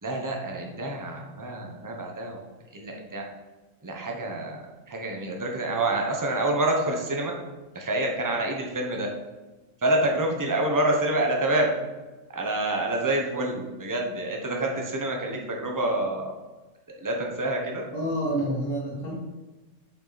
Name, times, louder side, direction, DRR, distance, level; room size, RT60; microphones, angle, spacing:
voice 1, 0.0-2.4 2.7-3.2 3.8-7.3 7.7-9.1 9.8-11.7 12.3-16.3 17.0-17.8, right 1 dB, 15° right, 1 dB, 1.1 m, -27 dB
voice 2, 17.9-19.2, right 1 dB, 85° left, -3 dB, 2.4 m, -28 dB
7.3 x 6.1 x 4.2 m, 1.2 s
omnidirectional pair, 1.3 m